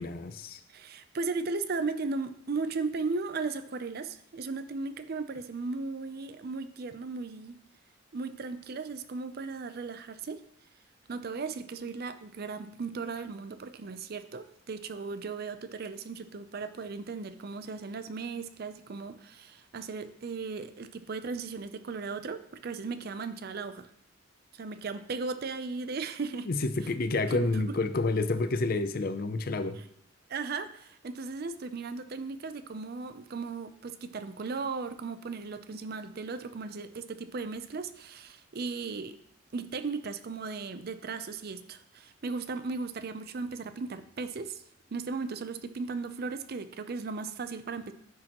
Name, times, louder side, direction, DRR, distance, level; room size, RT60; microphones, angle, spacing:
voice 1, 0.0-0.6 26.5-29.8, left 3 dB, 50° left, 11 dB, 0.5 m, -29 dB
voice 2, 0.7-7.6 8.1-10.4 11.1-23.9 24.5-26.5 27.3-27.5 30.3-39.2 39.5-44.6 44.9-47.9, right 4 dB, 50° right, 11 dB, 0.5 m, -36 dB
10.5 x 6.4 x 3.0 m, 0.70 s
head